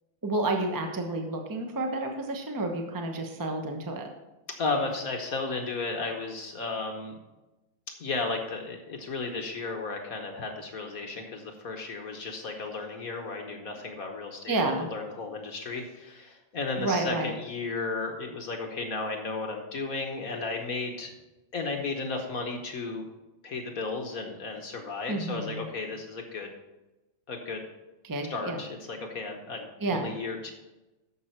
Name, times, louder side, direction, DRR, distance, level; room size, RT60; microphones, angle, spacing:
voice 1, 0.2-4.1 14.5-14.9 16.8-17.3 25.1-25.7 28.0-28.6 29.8-30.1, right 2 dB, 15° right, 3 dB, 0.7 m, -30 dB
voice 2, 4.6-7.2 8.0-21.1 21.5-23.0 23.4-26.5 27.3-27.6 28.3-30.5, left 3 dB, 55° left, 3 dB, 1.3 m, -34 dB
11.0 x 7.2 x 4.4 m, 1.0 s
omnidirectional pair, 2.1 m